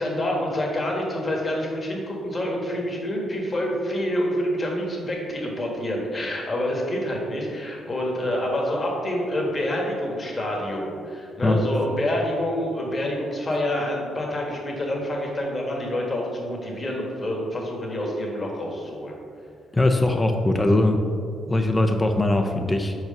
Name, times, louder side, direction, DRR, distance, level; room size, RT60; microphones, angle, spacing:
voice 1, 0.0-19.2, left 1 dB, 35° left, -1 dB, 1.6 m, -27 dB
voice 2, 19.7-21.0 21.5-23.0, left 1 dB, 20° left, 5 dB, 0.5 m, -21 dB
4.8 x 4.7 x 5.2 m, 2.3 s
cardioid pair, 75°, 0 cm